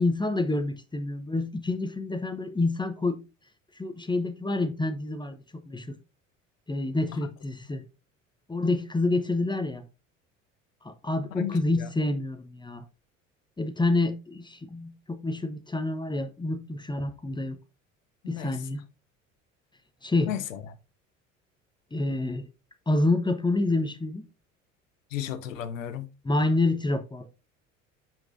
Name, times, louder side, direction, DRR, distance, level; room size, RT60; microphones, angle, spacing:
voice 1, 0.0-3.2 3.8-6.0 6.7-7.8 8.5-9.8 10.8-12.8 13.6-17.6 18.3-18.8 20.0-20.3 21.9-22.5 22.9-24.2 26.2-27.3, left 2 dB, 10° left, 0.9 m, -28 dB
voice 2, 11.3-11.9 18.2-18.6 20.2-20.6 25.1-26.1, left 10 dB, 75° left, 0.9 m, -34 dB
7.2 x 5.9 x 2.6 m
figure-of-eight pair, 65°, 39 cm